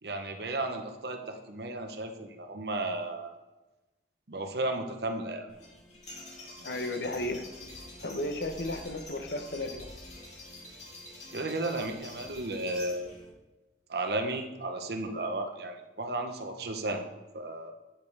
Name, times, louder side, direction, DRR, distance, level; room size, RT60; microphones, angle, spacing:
voice 1, 0.0-3.3 4.3-5.5 11.3-13.1 13.9-17.1 17.3-17.7, right 2 dB, 65° right, 5 dB, 0.9 m, -34 dB
sound 1, 5.5-13.3, left 1 dB, 40° left, 1.9 m, -47 dB
voice 2, 6.6-7.4 8.0-9.9, left 1 dB, 65° left, 7 dB, 0.9 m, -34 dB
9.0 x 5.4 x 4.7 m, 1.1 s
head